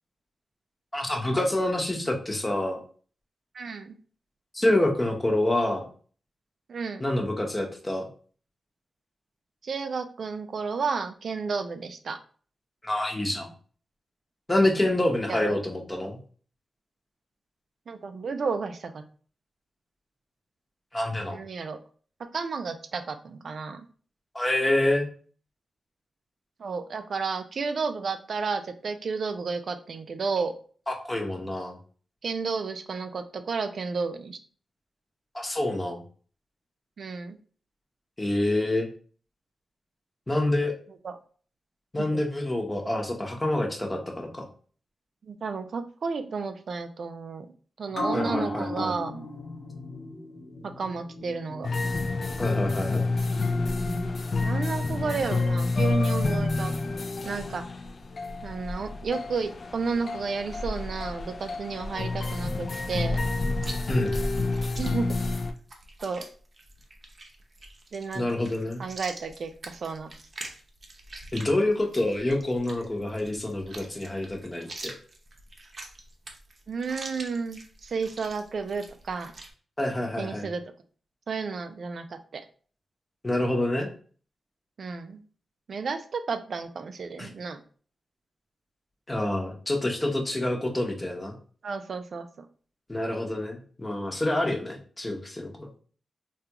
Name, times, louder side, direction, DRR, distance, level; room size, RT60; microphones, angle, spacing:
voice 1, 0.9-2.8 4.5-5.9 7.0-8.1 12.8-13.5 14.5-16.2 20.9-21.4 24.3-25.1 30.9-31.8 35.3-36.0 38.2-38.9 40.3-40.7 41.9-44.5 48.1-48.9 52.4-53.1 63.9-64.2 68.1-68.8 71.3-74.9 79.8-80.5 83.2-83.9 87.2-87.3 89.1-91.4 92.9-95.7, left 1 dB, 20° left, 2 dB, 0.8 m, -27 dB
voice 2, 3.5-4.0 6.7-7.0 9.6-12.2 15.3-15.6 17.9-19.0 21.3-21.8 22.3-23.9 26.6-30.5 32.2-34.4 37.0-37.4 41.0-41.2 42.0-42.2 45.2-47.5 47.8-49.3 50.6-51.7 54.4-56.7 57.2-57.6 58.4-63.3 64.8-65.1 66.0-66.2 67.9-68.3 68.8-70.1 76.7-79.3 80.2-80.6 81.3-82.5 84.8-85.2 85.7-87.6 91.6-92.5, right 5 dB, 65° right, 8 dB, 0.3 m, -32 dB
sound 1, 47.9-54.8 55.2-55.3, left 1 dB, 75° left, 1.0 m, -37 dB
sound 2, 51.6-65.5, left 3 dB, 55° left, 0.3 m, -29 dB
Chewing mastication, 63.6-79.5, right 2 dB, 45° right, 0.7 m, -45 dB
3.5 x 2.3 x 2.8 m, 0.43 s
cardioid pair, 80°, 0 cm